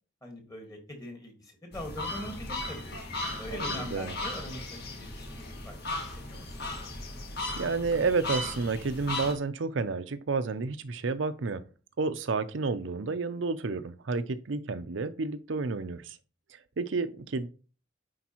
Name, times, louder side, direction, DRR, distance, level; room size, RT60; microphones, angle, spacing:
voice 1, 0.2-3.0 3.4-6.9, left 1 dB, 20° left, 1.6 m, -43 dB
sound 1, 1.7-9.3, left 2 dB, 55° left, 1.7 m, -36 dB
voice 2, 3.5-4.1 7.6-11.6 12.0-16.2 16.8-17.5, right 4 dB, 70° right, 0.6 m, -30 dB
10.0 x 4.6 x 3.0 m
head